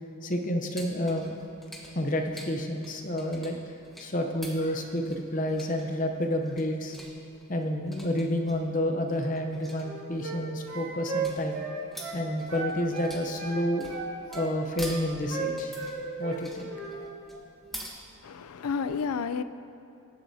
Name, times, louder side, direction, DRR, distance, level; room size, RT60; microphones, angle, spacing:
voice 1, 0.2-1.4 1.9-3.6 4.0-7.0 7.5-11.6 12.1-13.9 14.3-15.8 16.2-17.4, left 1 dB, 35° left, 3 dB, 0.7 m, -30 dB
sound 1, 0.7-17.9, equal, ahead, 1.0 m, -47 dB
sound 2, 9.7-10.4 10.7-12.2 12.5-13.6 13.9-14.9 15.3-16.4 16.7-16.9, right 5 dB, 75° right, 2.5 m, -35 dB
voice 2, 18.2-19.4, left 5 dB, 90° left, 13 dB, 0.4 m, -31 dB
19.5 x 7.8 x 2.7 m, 2.7 s
head